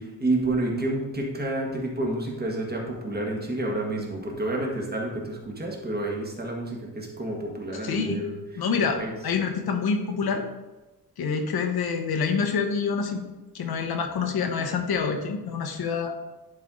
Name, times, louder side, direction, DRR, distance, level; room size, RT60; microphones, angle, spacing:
voice 1, 0.0-8.4 8.9-9.1, right 2 dB, 25° right, -1 dB, 1.7 m, -29 dB
voice 2, 7.8-8.2 8.6-10.4 11.2-13.2 13.5-16.1, left 5 dB, 80° left, 5 dB, 1.2 m, -27 dB
10.5 x 4.6 x 3.8 m, 1.1 s
wide cardioid pair, 145°, 37 cm